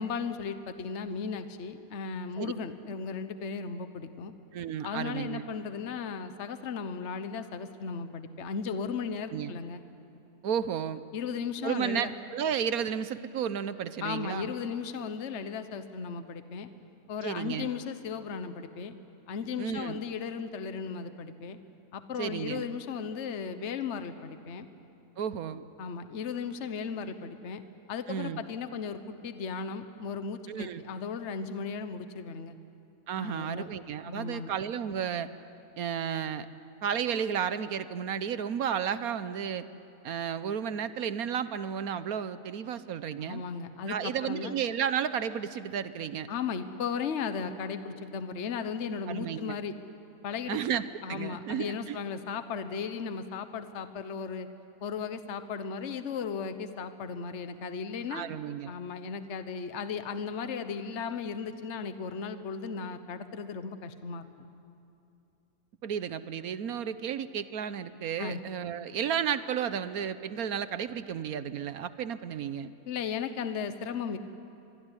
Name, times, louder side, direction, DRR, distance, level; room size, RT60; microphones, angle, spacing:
voice 1, 0.0-4.3 4.8-9.8 11.1-12.1 14.0-16.7 17.1-18.9 19.3-21.6 21.9-24.7 25.8-27.6 27.9-32.6 33.2-33.7 34.1-34.5 43.2-44.5 46.3-49.8 50.2-50.6 51.0-54.5 54.8-58.3 58.7-64.3 68.2-68.4 72.9-74.2, left 6 dB, 50° left, 10 dB, 1.3 m, -36 dB
voice 2, 4.5-5.4 9.3-9.5 10.4-11.0 11.6-14.5 17.2-17.7 19.6-20.0 22.2-22.6 25.2-25.6 28.1-28.4 30.5-30.8 33.1-35.3 35.8-36.5 36.8-39.6 40.0-43.4 43.9-46.3 49.1-49.5 50.5-50.8 51.1-52.0 58.1-58.7 65.8-72.7, right 8 dB, 65° right, 13 dB, 1.2 m, -32 dB
25.5 x 22.5 x 9.9 m, 2.6 s
omnidirectional pair, 1.7 m